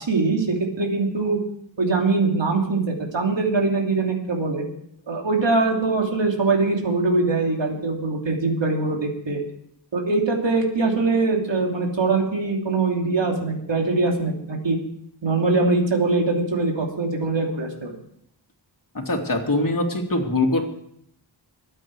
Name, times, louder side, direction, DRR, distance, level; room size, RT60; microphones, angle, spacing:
voice 1, 0.0-1.4 1.8-4.6 5.1-9.4 9.9-14.8 15.2-17.9, right 3 dB, 75° right, 1 dB, 2.9 m, -22 dB
voice 2, 18.9-20.6, left 2 dB, 45° left, 1 dB, 2.7 m, -23 dB
23.5 x 8.8 x 4.8 m, 0.70 s
wide cardioid pair, 80°, 45 cm